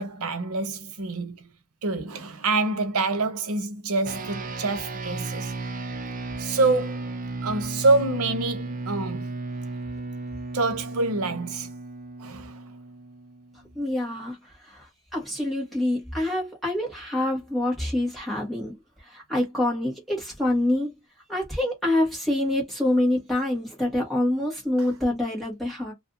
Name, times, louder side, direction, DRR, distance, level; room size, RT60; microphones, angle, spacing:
voice 1, 0.0-1.5 1.8-5.5 6.4-7.1 7.4-9.3 10.5-11.7 12.2-12.6 24.8-24.9, right 3 dB, 85° right, 0.8 m, -26 dB
sound 1, 4.0-13.7, right 3 dB, 35° right, 0.5 m, -35 dB
voice 2, 13.7-18.8 19.0-20.9 21.3-25.9, left 1 dB, ahead, 1.2 m, -26 dB
2.5 x 2.5 x 3.7 m
head